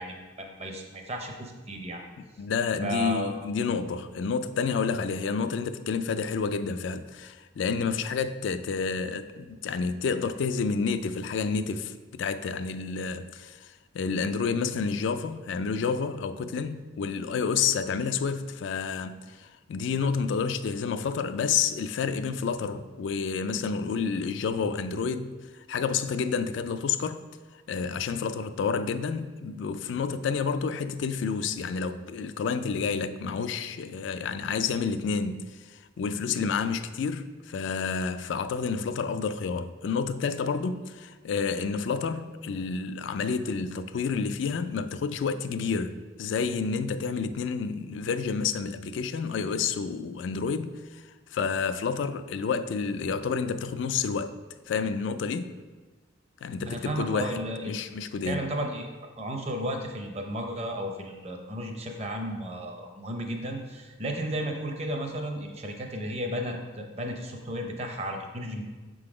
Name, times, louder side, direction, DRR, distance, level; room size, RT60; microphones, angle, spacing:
voice 1, 0.0-2.0 2.8-3.4 56.7-57.8 58.2-58.9 59.2-68.6, equal, 30° right, 0.7 m, -33 dB
voice 2, 2.4-27.2 27.7-51.0 51.3-54.4 54.7-55.5 56.4-58.4, left 5 dB, 65° left, 0.3 m, -29 dB
6.5 x 3.8 x 4.9 m
head